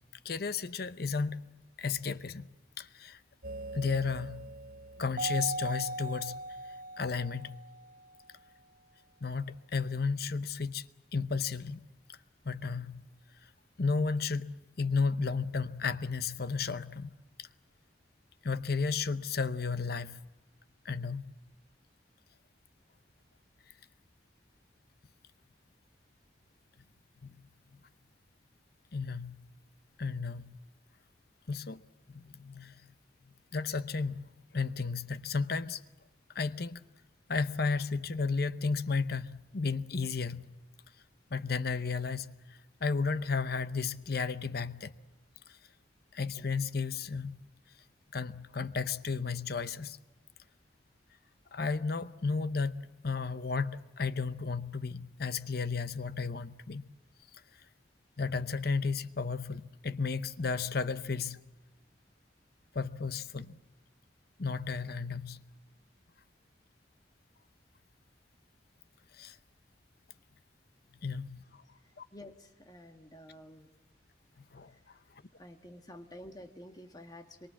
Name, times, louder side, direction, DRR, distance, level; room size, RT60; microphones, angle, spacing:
voice 1, 0.2-2.5 2.8-3.2 3.7-4.5 5.0-6.6 7.0-7.6 9.2-11.8 12.4-13.1 13.4-13.5 13.8-17.5 18.4-20.3 20.8-21.2 27.2-27.8 28.9-29.5 30.0-30.6 31.5-31.8 32.1-32.9 33.5-35.8 36.3-36.8 37.3-40.6 41.3-45.0 45.5-45.6 46.1-47.5 48.1-50.0 51.5-56.9 58.2-61.4 62.7-63.6 64.4-65.4 69.1-69.4 71.0-71.6 72.0-72.1 74.4-75.0, left 4 dB, 55° left, 0.8 m, -33 dB
sound 1, 3.4-8.1, right 2 dB, 50° right, 1.0 m, -40 dB
voice 2, 72.1-73.7 74.7-74.8 75.4-77.5, left 1 dB, 20° left, 1.6 m, -50 dB
25.5 x 23.0 x 7.5 m
head